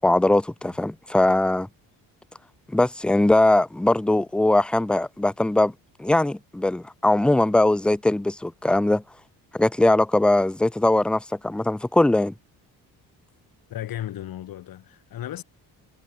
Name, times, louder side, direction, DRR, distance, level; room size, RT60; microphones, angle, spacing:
voice 1, 0.0-1.7 2.7-5.7 6.0-9.0 9.5-12.3, left 1 dB, 5° left, 0.5 m, -20 dB
voice 2, 13.7-15.4, left 12 dB, 65° left, 7.3 m, -34 dB
cardioid pair, 135°, 37 cm